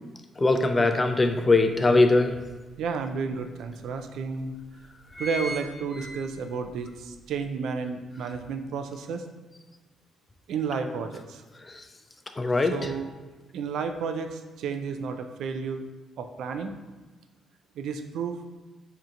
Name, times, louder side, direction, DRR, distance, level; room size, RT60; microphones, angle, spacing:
voice 1, 0.4-2.4 11.7-11.8 12.4-12.7, left 2 dB, 25° left, 6 dB, 0.3 m, -21 dB
sound 1, 0.9-1.0 1.5-2.7 3.3-3.4 3.6-3.7 4.4-4.6 4.9-6.7 7.1-7.2, equal, ahead, 0.7 m, -37 dB
voice 2, 2.8-4.6 5.2-9.3 10.5-11.4 12.7-13.1 13.5-15.8 16.2-16.7 17.8-18.4, right 5 dB, 75° right, 7 dB, 0.3 m, -32 dB
4.4 x 2.7 x 2.5 m, 1.3 s
cardioid pair, 90°, 0 cm